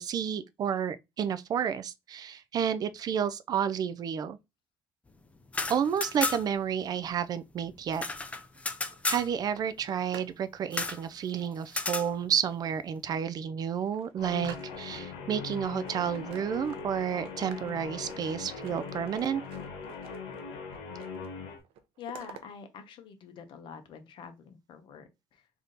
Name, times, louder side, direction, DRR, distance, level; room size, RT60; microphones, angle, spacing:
voice 1, 0.0-4.4 5.7-8.0 9.1-19.4, right 8 dB, 40° right, 0.4 m, -31 dB
sound 1, 5.4-6.7 6.9-7.0 7.3-9.3 10.7-11.0 11.7-12.1, left 3 dB, 15° left, 0.5 m, -33 dB
sound 2, 8.4-10.4 10.7-11.1 11.9-12.7 13.2-13.3 13.6-15.1 15.5-17.0 17.3-20.4 20.7-21.3 21.6-22.4, right 8 dB, 80° right, 0.7 m, -51 dB
Guitar, 14.2-21.6, left 5 dB, 80° left, 1.3 m, -40 dB
voice 2, 22.0-25.5, left 7 dB, 55° left, 0.9 m, -46 dB
3.5 x 2.7 x 3.8 m
cardioid pair, 130°, 10 cm